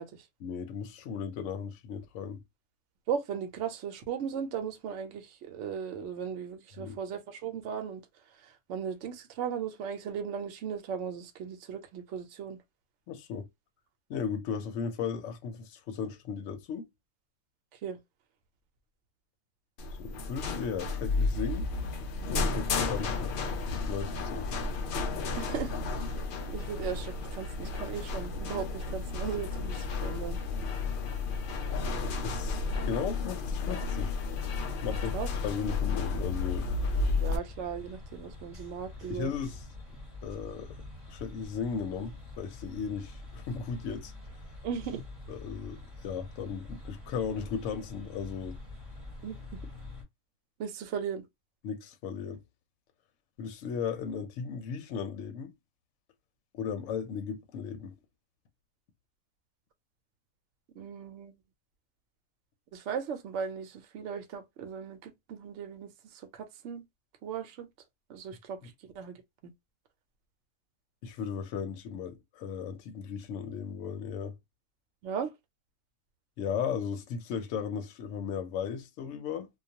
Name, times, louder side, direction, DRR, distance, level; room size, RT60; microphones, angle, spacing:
voice 1, 0.4-2.4 6.8-7.0 13.1-13.5 14.1-16.9 20.0-21.7 22.3-23.3 23.7-24.7 32.2-34.2 34.8-35.1 35.4-36.7 39.1-39.6 40.2-40.8 41.1-44.1 45.3-48.6 51.6-52.4 53.4-55.5 56.5-57.9 68.6-68.7 71.0-74.3 76.4-79.5, left 6 dB, 70° left, 0.9 m, -36 dB
voice 2, 3.1-8.0 8.4-12.6 17.8-18.0 25.3-25.7 26.5-30.4 34.9-35.3 37.2-39.3 44.6-45.0 49.2-49.6 50.6-51.3 60.7-61.3 62.7-66.8 67.2-67.7 68.1-69.5 75.0-75.3, right 7 dB, 65° right, 0.9 m, -37 dB
sound 1, 19.8-37.4, left 3 dB, 85° left, 0.4 m, -32 dB
sound 2, 36.3-50.0, left 2 dB, 25° right, 0.9 m, -46 dB
2.3 x 2.3 x 2.7 m
omnidirectional pair, 1.5 m